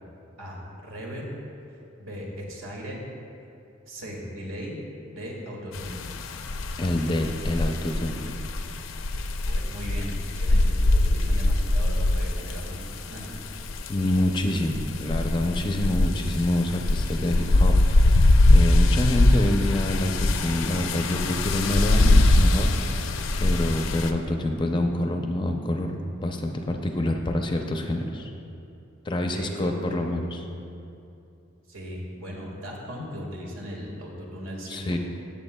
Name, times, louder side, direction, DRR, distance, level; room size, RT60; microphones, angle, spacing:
voice 1, 0.4-1.3 2.0-3.0 3.8-4.8 5.1-6.0 9.4-12.8 13.1-13.3 29.3-30.0 31.7-35.0, equal, 80° right, -2 dB, 1.7 m, -37 dB
sound 1, 5.7-24.1, left 2 dB, 75° left, 0.5 m, -22 dB
voice 2, 6.8-8.3 13.9-28.3 29.1-30.3 34.7-35.0, left 1 dB, 25° left, 4 dB, 0.5 m, -27 dB
15.5 x 7.3 x 2.2 m, 2.7 s
head